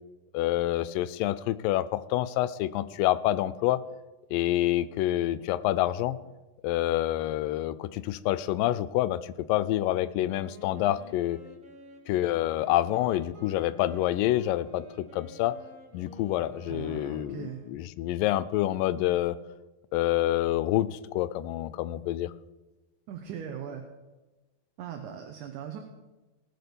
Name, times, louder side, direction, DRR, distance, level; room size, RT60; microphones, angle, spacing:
voice 1, 0.3-3.8 4.3-6.2 6.6-11.4 12.1-15.5 15.9-19.4 19.9-22.3, left 14 dB, 85° left, 16 dB, 2.3 m, -27 dB
Wind instrument woodwind instrument, 10.3-17.9, equal, 25° right, 2.1 m, -51 dB
voice 2, 16.7-17.6 23.1-23.9 24.8-25.8, right 8 dB, 70° right, 4 dB, 2.4 m, -39 dB
19.0 x 6.6 x 6.9 m, 1.1 s
omnidirectional pair, 3.9 m